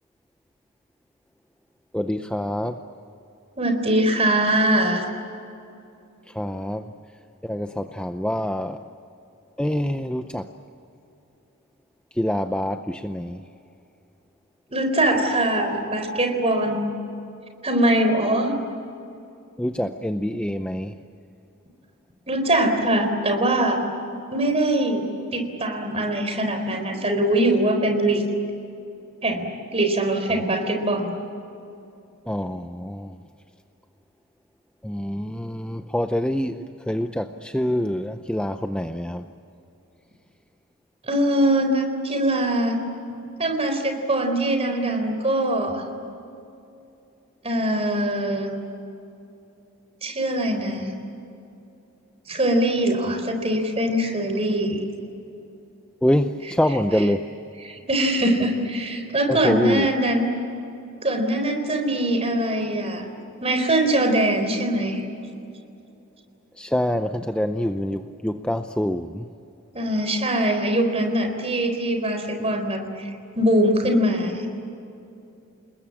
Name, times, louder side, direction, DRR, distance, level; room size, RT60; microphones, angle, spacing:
voice 1, 1.9-2.8 6.3-6.9 7.4-8.8 9.6-10.5 12.2-13.4 19.6-21.0 30.3-30.4 32.3-33.2 34.8-39.3 56.0-57.3 59.3-59.9 66.6-69.3, equal, 5° left, 7 dB, 0.6 m, -25 dB
voice 2, 3.6-5.0 14.7-16.9 17.6-18.5 22.3-23.8 24.3-25.0 25.3-28.2 29.2-29.5 29.7-31.2 41.0-42.8 43.4-45.8 47.4-48.5 50.0-50.9 52.3-54.8 57.6-60.4 61.0-63.0 63.4-65.0 69.7-74.5, right 1 dB, 30° right, 5 dB, 4.0 m, -22 dB
29.5 x 20.5 x 8.6 m, 2.7 s
head